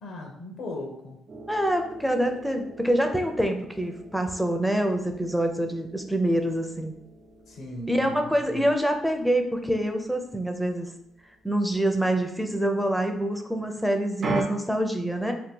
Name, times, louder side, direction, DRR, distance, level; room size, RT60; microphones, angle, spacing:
voice 1, 0.0-1.2 7.5-8.7, left 1 dB, 80° left, 0 dB, 0.8 m, -38 dB
sound 1, 1.3-12.8 14.2-14.4, right 3 dB, 50° right, 0.5 m, -40 dB
voice 2, 1.5-6.9 7.9-10.9 11.4-15.3, right 1 dB, ahead, 5 dB, 0.5 m, -26 dB
2.8 x 2.2 x 3.7 m, 0.73 s
cardioid pair, 90°, 0 cm